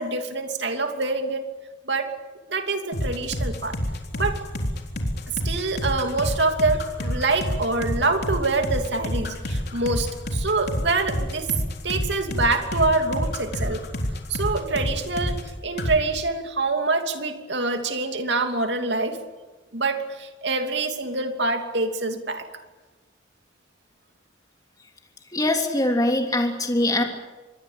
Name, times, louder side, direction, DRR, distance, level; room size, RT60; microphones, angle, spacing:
voice 1, 0.0-1.4 1.8-2.1 2.5-3.7 4.1-4.4 5.4-11.5 11.8-13.8 14.3-19.2 19.7-22.4, right 3 dB, 65° right, 5 dB, 2.9 m, -25 dB
sound 1, 2.9-15.5 15.8-16.0, equal, 55° left, 3.8 m, -28 dB
voice 2, 25.3-27.0, left 1 dB, 20° left, 2 dB, 3.3 m, -22 dB
26.0 x 22.0 x 8.8 m, 1.2 s
head